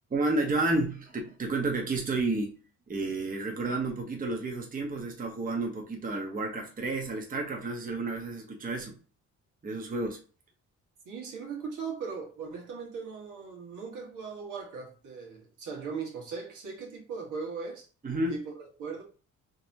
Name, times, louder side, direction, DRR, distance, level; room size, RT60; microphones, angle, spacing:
voice 1, 0.1-2.6 2.9-8.9 9.6-10.2 18.0-18.3, right 2 dB, 30° right, 0.9 m, -31 dB
voice 2, 11.0-17.9 18.3-19.0, right 5 dB, 80° right, 1.5 m, -39 dB
3.9 x 2.9 x 2.6 m
cardioid pair, 90°, 30 cm